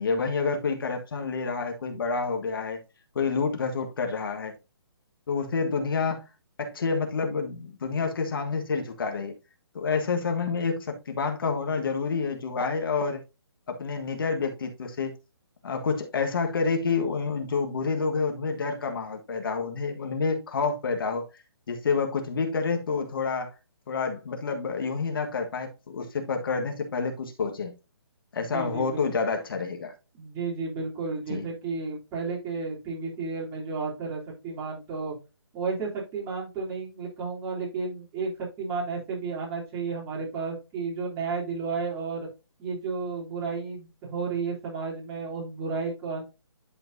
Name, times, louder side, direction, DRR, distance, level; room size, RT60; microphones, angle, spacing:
voice 1, 0.0-2.8 3.1-4.5 5.3-6.2 6.6-9.3 9.7-13.2 13.7-15.1 15.6-21.2 21.7-23.5 23.9-27.8 28.3-29.9 31.3-31.5, left 4 dB, 60° left, 1.5 m, -28 dB
voice 2, 28.4-29.0 30.1-35.1 35.5-38.3 38.6-42.3 42.6-46.3, right 4 dB, 20° right, 3.1 m, -32 dB
11.0 x 4.4 x 2.7 m
hypercardioid pair, 150°, 14 cm